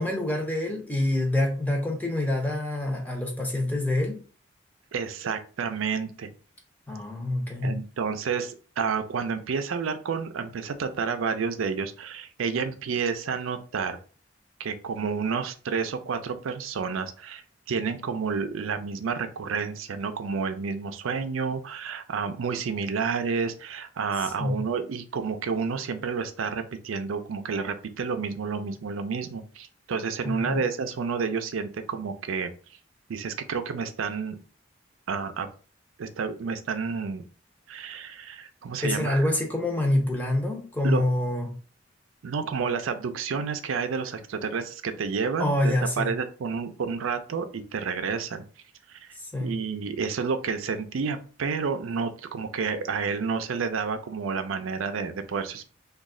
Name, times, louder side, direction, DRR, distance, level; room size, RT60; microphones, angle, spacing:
voice 1, 0.0-4.2 6.9-7.8 24.2-24.6 30.2-30.6 38.8-41.5 45.4-46.1 49.2-49.5, left 1 dB, 10° left, 1 dB, 0.6 m, -26 dB
voice 2, 4.9-6.3 7.6-14.0 14.6-17.4 17.7-32.5 33.1-34.4 35.1-35.5 36.0-37.2 37.7-39.3 40.8-41.0 42.2-48.4 48.9-49.1 49.4-55.6, right 5 dB, 85° right, 8 dB, 0.4 m, -30 dB
3.1 x 2.3 x 3.6 m, 0.38 s
head